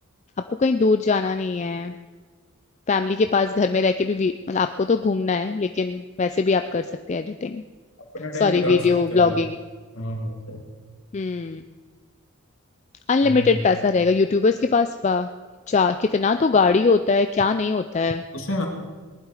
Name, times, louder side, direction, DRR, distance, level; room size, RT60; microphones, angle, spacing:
voice 1, 0.5-2.0 2.9-7.6 8.4-9.6 11.1-11.6 13.1-15.3 15.7-18.2, left 4 dB, 30° left, 8 dB, 0.3 m, -21 dB
voice 2, 8.1-8.9 9.1-9.4 9.9-10.6 13.2-13.6 18.3-18.7, left 1 dB, 60° left, 2 dB, 2.3 m, -29 dB
19.0 x 11.5 x 4.9 m, 1.4 s
head